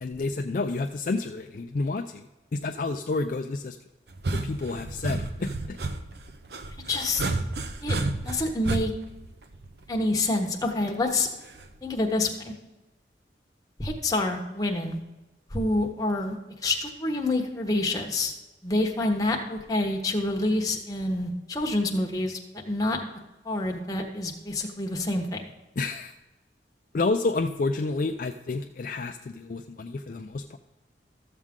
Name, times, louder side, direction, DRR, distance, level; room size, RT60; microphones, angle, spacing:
voice 1, 0.0-2.2 2.5-3.8 4.3-5.8 25.8-26.1 26.9-30.6, left 3 dB, 50° left, 4 dB, 0.4 m, -29 dB
sound 1, 4.1-10.2 11.6-11.9, right 2 dB, 65° right, 0.7 m, -31 dB
voice 2, 6.9-7.2 7.8-8.0 8.2-8.9 9.9-11.3 11.8-12.3 13.8-15.0 15.5-16.4 16.6-18.3 18.6-22.4 22.7-23.0 23.4-25.4, left 2 dB, 20° left, 1 dB, 1.1 m, -27 dB
13.5 x 7.4 x 3.7 m, 1.1 s
head